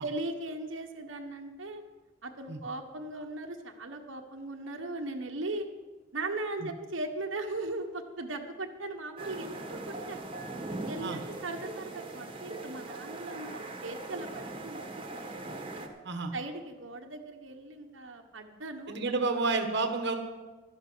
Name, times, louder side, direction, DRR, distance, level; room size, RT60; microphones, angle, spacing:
voice 1, 0.0-1.8 2.2-5.7 6.1-10.2 10.8-14.8 16.3-19.0, right 2 dB, 80° right, 3 dB, 1.3 m, -38 dB
sound 1, 9.2-15.9, right 2 dB, 30° right, 1.4 m, -40 dB
voice 2, 18.9-20.1, right 3 dB, 65° right, 5 dB, 1.3 m, -30 dB
13.0 x 10.5 x 6.2 m, 1.3 s
head